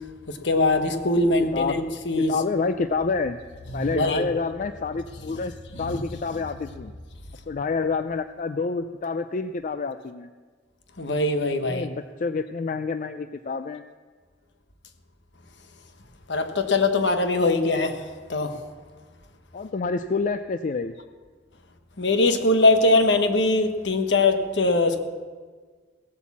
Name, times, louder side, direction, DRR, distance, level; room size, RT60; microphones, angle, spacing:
voice 1, 0.3-2.3 3.8-4.3 5.7-6.0 11.0-11.9 16.3-18.0 18.3-18.5 22.0-25.0, left 2 dB, 70° left, 7 dB, 1.2 m, -22 dB
voice 2, 1.4-1.8 2.2-3.4 3.7-6.9 7.5-10.3 11.6-13.8 19.5-20.9, left 4 dB, 45° left, 10 dB, 0.4 m, -28 dB
16.5 x 8.3 x 7.2 m, 1.5 s
head